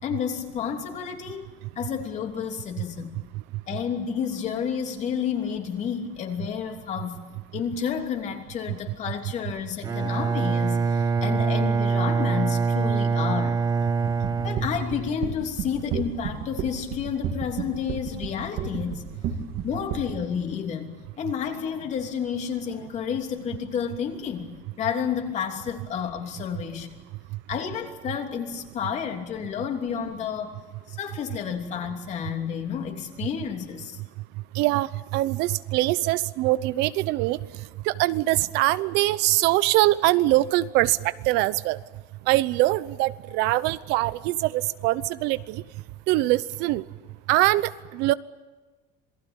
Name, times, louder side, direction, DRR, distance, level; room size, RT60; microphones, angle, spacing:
voice 1, 0.0-3.1 3.7-7.2 7.5-13.6 14.4-19.1 19.6-24.5 24.8-26.9 27.5-30.6 30.9-34.0, left 7 dB, 40° left, 4 dB, 3.1 m, -30 dB
Bowed string instrument, 9.8-15.3, right 5 dB, 20° right, 1.1 m, -24 dB
sound 1, 14.1-20.1, right 7 dB, 60° right, 3.0 m, -31 dB
voice 2, 34.5-41.8 42.3-45.6 46.1-46.8 47.3-48.1, right 17 dB, 85° right, 16 dB, 0.9 m, -23 dB
27.5 x 19.0 x 9.0 m, 1.3 s
cardioid pair, 155°, 17 cm